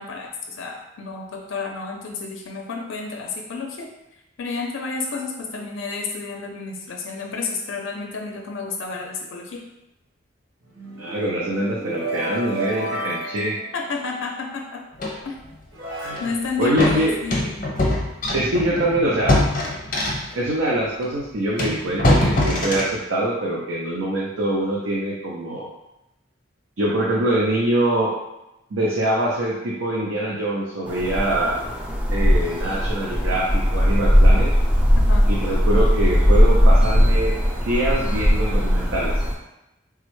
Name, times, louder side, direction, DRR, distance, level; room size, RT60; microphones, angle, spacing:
voice 1, 0.0-3.9 4.4-9.6 13.7-14.8 15.2-15.3 16.2-17.5 35.0-35.3, left 4 dB, 80° left, 2 dB, 0.4 m, -31 dB
sound 1, 10.6-14.4 15.2-15.3 15.7-17.6, right 1 dB, 50° right, 0.9 m, -33 dB
voice 2, 11.0-13.6 16.0-16.2 16.6-17.2 18.3-19.4 20.3-25.7 26.8-28.2 28.7-31.6 32.1-34.5 35.3-37.3 37.7-39.2, right 1 dB, 90° right, -4 dB, 0.5 m, -24 dB
sound 2, 15.0-15.2 16.1-16.3 16.8-20.4 21.0-21.1 21.6-23.0, left 1 dB, 45° left, 0.6 m, -22 dB
sound 3, 30.9-39.3, equal, 5° right, 0.3 m, -18 dB
3.5 x 2.1 x 3.0 m, 0.91 s
head